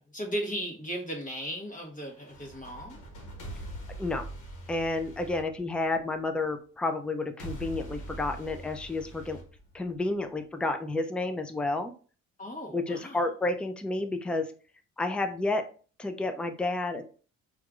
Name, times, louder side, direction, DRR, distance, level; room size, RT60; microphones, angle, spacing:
voice 1, 0.0-3.0 12.4-13.2, equal, 25° left, 2 dB, 1.1 m, -36 dB
sound 1, 2.1-6.2 7.4-10.2, right 1 dB, 80° left, 1.1 m, -43 dB
voice 2, 4.7-9.4 9.7-11.9 12.7-14.5 15.0-15.6 16.0-17.0, left 2 dB, 5° left, 7 dB, 0.4 m, -30 dB
4.5 x 2.4 x 2.4 m, 0.39 s
cardioid pair, 90°, 30 cm